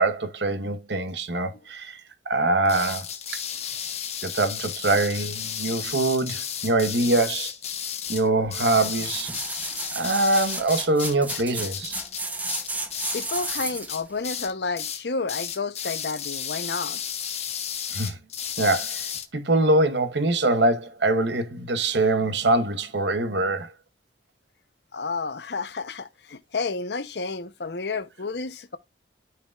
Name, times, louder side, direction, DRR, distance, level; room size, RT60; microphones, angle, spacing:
voice 1, 0.0-2.0 2.3-3.1 3.3-3.4 4.2-7.5 8.1-9.3 9.9-12.0 17.9-18.2 18.6-19.1 19.3-23.7, right 2 dB, 85° right, 1.1 m, -23 dB
sound 1, 2.6-13.6 13.9-14.5 14.7-15.0 15.3-19.2, left 8 dB, 35° left, 1.1 m, -33 dB
sound 2, 8.8-14.0 14.5-14.6, right 2 dB, 10° right, 0.8 m, -33 dB
voice 2, 13.1-17.0 24.9-28.8, left 4 dB, 75° left, 0.7 m, -31 dB
13.0 x 4.9 x 2.4 m
head